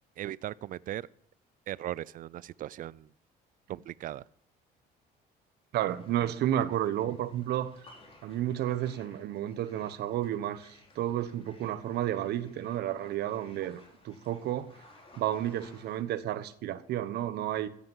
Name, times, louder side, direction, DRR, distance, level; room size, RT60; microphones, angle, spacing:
voice 1, 0.2-1.1 1.7-3.1 3.7-4.2, right 13 dB, 55° right, 0.5 m, -38 dB
voice 2, 5.7-7.7 8.2-14.7 15.2-17.7, right 12 dB, 75° right, 1.2 m, -31 dB
sound 1, 5.9-16.0, left 2 dB, 35° left, 4.2 m, -58 dB
15.0 x 8.9 x 7.3 m
cardioid pair, 110°, 17 cm